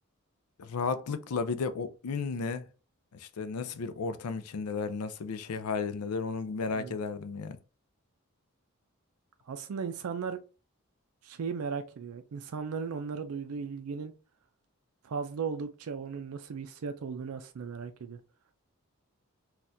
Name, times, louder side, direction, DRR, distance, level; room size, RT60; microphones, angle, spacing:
voice 1, 0.6-2.7 3.1-7.6, left 5 dB, 85° left, 0.4 m, -33 dB
voice 2, 9.5-10.4 11.2-14.1 15.0-18.2, right 5 dB, 75° right, 0.4 m, -36 dB
4.2 x 2.4 x 2.6 m
head